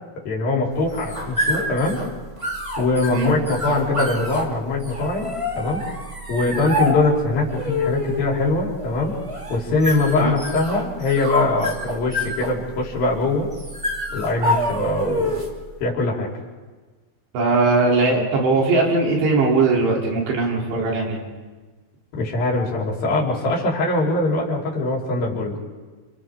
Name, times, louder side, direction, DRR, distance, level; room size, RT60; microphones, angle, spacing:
voice 1, 0.2-2.0 2.8-5.3 5.6-5.8 6.3-9.1 9.5-13.5 14.1-15.4 15.8-16.3 22.2-25.6, left 2 dB, 55° left, -3 dB, 5.6 m, -22 dB
sound 1, 0.7-15.6, left 1 dB, 50° right, 0.3 m, -27 dB
voice 2, 17.3-21.2, right 3 dB, 80° right, -2 dB, 5.8 m, -19 dB
29.5 x 28.5 x 3.8 m, 1.3 s
omnidirectional pair, 4.9 m